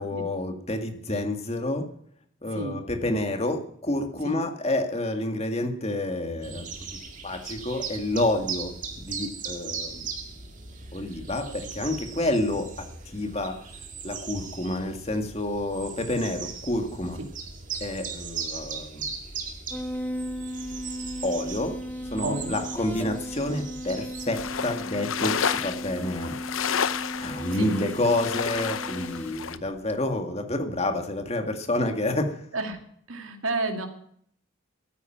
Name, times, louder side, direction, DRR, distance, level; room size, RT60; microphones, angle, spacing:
voice 1, 0.0-1.9 2.4-6.7 7.2-8.7 9.0-10.1 10.9-12.7 13.1-13.6 14.0-17.2 17.8-19.1 21.2-21.7 22.1-26.3 27.2-32.4, left 1 dB, 30° left, 5 dB, 1.9 m, -29 dB
sound 1, 6.4-24.2, right 5 dB, 40° right, 2.2 m, -38 dB
sound 2, 19.7-30.2, equal, 10° left, 0.7 m, -36 dB
voice 2, 22.2-22.6 27.5-27.7 32.5-32.8 33.1-33.9, right 2 dB, 90° right, 5 dB, 2.4 m, -31 dB
sound 3, 24.3-29.6, left 7 dB, 85° left, 0.7 m, -31 dB
13.5 x 9.3 x 9.0 m, 0.65 s
head